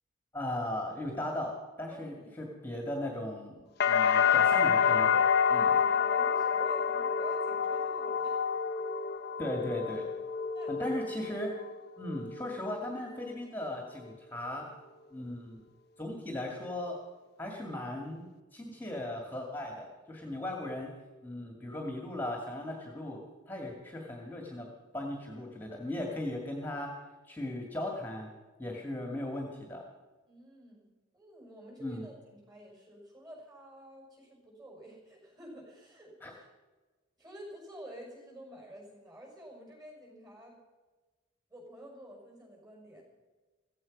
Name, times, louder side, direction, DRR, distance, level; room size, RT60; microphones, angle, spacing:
voice 1, 0.3-3.6 3.9-5.7 9.4-10.1 10.7-11.5 12.0-14.7 15.1-15.6 16.0-17.0 17.4-20.9 21.2-23.2 23.5-24.7 24.9-26.9 27.3-28.3 28.6-29.8 31.8-32.0 36.2-36.3, left 1 dB, 10° left, 0 dB, 2.2 m, -37 dB
voice 2, 1.9-2.3 4.1-4.8 5.5-8.4 10.5-11.1 28.7-28.9 30.3-36.5 37.2-40.6 41.5-43.0, right 1 dB, 20° right, -1 dB, 6.0 m, -50 dB
sound 1, 3.8-11.7 12.1-12.7, left 7 dB, 50° left, 0.8 m, -28 dB
16.0 x 16.0 x 5.4 m, 1.2 s
head